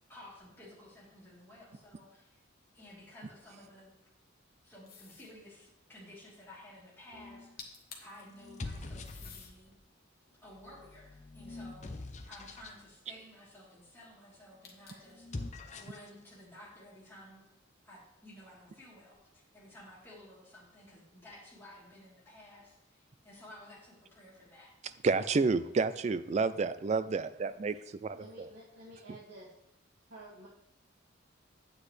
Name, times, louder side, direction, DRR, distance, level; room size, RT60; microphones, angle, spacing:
voice 1, 0.1-2.4 2.7-3.9 4.6-7.7 8.0-9.7 10.4-11.9 12.3-17.5 17.8-25.0, left 1 dB, 10° left, -8 dB, 3.3 m, -54 dB
sound 1, 4.9-5.4 7.3-7.4 7.6-8.2 9.0-9.6 10.2-11.7 14.6-15.2, left 6 dB, 50° left, 1.3 m, -52 dB
sound 2, 7.1-7.5 8.4-9.7 10.5-12.8 15.1-16.1, left 2 dB, 35° left, 0.7 m, -44 dB
voice 2, 25.0-28.5, right 4 dB, 35° right, 13 dB, 0.3 m, -30 dB
voice 3, 28.1-29.6 30.1-30.5, right 1 dB, 85° right, -8 dB, 2.2 m, -51 dB
9.6 x 8.3 x 3.3 m, 0.85 s
head